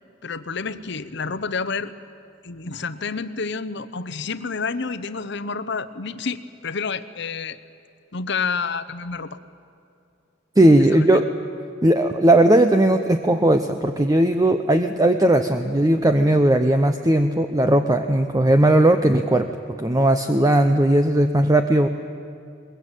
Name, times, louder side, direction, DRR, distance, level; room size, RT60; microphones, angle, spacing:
voice 1, 0.2-1.9 2.4-7.6 8.1-9.4 10.9-11.2, left 4 dB, 65° left, 13 dB, 0.9 m, -29 dB
voice 2, 10.6-11.2 11.8-19.5 19.8-21.9, right 1 dB, 20° right, 7 dB, 0.7 m, -17 dB
22.0 x 21.5 x 9.1 m, 2.5 s
head